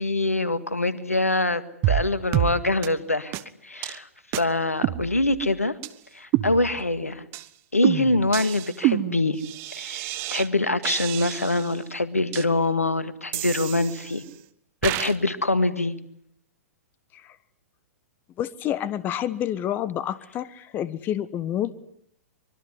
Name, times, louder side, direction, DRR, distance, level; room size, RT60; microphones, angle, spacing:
voice 1, 0.0-3.3 3.6-4.1 4.4-5.7 6.1-7.2 7.7-9.4 9.7-14.2 14.8-15.9, left 2 dB, 85° left, 13 dB, 1.9 m, -24 dB
sound 1, 1.8-2.1 2.3-2.5 2.8-2.9 3.3-3.4 3.8-4.0 4.3-4.4 4.8-5.5 5.8-5.9 6.3-7.0 7.3-7.5 7.8-10.5 10.8-11.7 12.3-12.4 13.3-14.3 14.8-15.2, right 15 dB, 35° right, 1.4 m, -28 dB
voice 2, 18.4-21.7, left 11 dB, 25° left, 17 dB, 1.3 m, -29 dB
25.0 x 23.0 x 9.6 m, 0.69 s
figure-of-eight pair, 110°, 8 cm